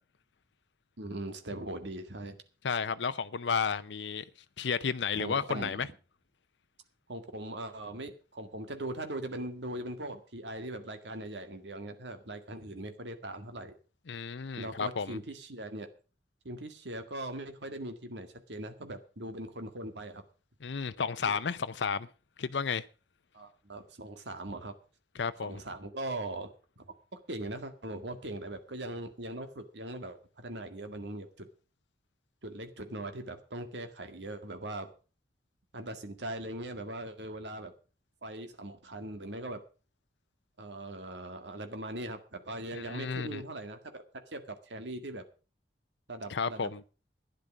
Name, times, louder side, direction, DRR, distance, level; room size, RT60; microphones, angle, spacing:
voice 1, 1.0-2.4 5.1-5.9 7.1-13.7 14.6-15.9 16.4-20.2 21.3-21.4 23.3-24.7 25.4-26.5 27.1-31.5 32.4-34.9 35.7-37.7 38.2-39.6 40.6-44.0 44.3-45.2 46.1-46.7, right 1 dB, 80° right, 2.0 m, -40 dB
voice 2, 2.6-4.2 4.6-5.9 14.1-15.2 20.6-22.1 22.4-22.8 25.2-25.6 42.7-43.4 46.3-46.8, left 6 dB, 85° left, 0.6 m, -32 dB
12.0 x 10.5 x 6.3 m
head